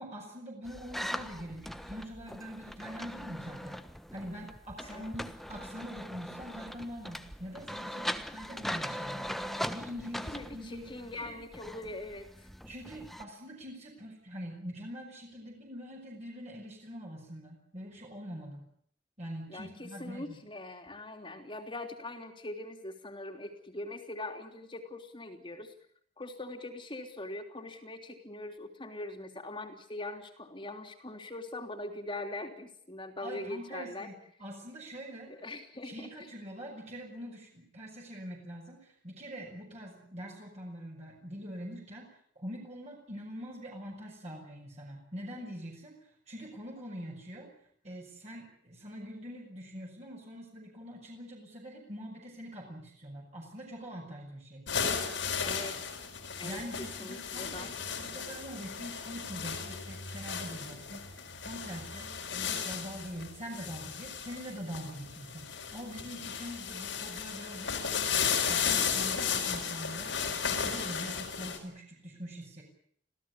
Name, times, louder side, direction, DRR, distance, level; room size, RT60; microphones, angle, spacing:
voice 1, 0.0-3.8 4.1-9.3 9.7-11.4 12.7-18.7 19.2-20.4 33.2-34.1 34.4-35.3 35.8-42.1 42.3-45.9 46.3-47.5 47.8-54.7 56.4-67.8 68.1-70.2 70.5-72.6, equal, 40° right, -1 dB, 6.4 m, -44 dB
sound 1, 0.6-13.2, equal, ahead, 1.2 m, -40 dB
voice 2, 10.3-12.3 19.5-25.7 26.2-34.1 35.3-36.1 55.4-55.8 56.4-57.8, left 2 dB, 30° left, 4 dB, 3.3 m, -42 dB
sound 2, 54.7-71.6, left 6 dB, 85° left, 4.7 m, -35 dB
26.5 x 17.0 x 8.3 m, 0.65 s
head